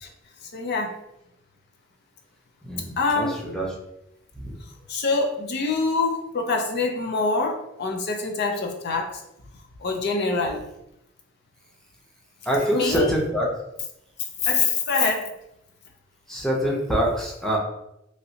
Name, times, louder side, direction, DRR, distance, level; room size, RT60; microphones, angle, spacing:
voice 1, 0.5-0.9 3.0-3.5 4.9-9.2 9.8-10.6 12.5-13.2 14.4-15.3, left 3 dB, 55° left, 3 dB, 0.5 m, -25 dB
voice 2, 2.6-3.7 4.4-4.5 12.5-13.5 16.3-17.6, equal, ahead, -3 dB, 0.6 m, -25 dB
3.0 x 2.7 x 2.7 m, 0.83 s
head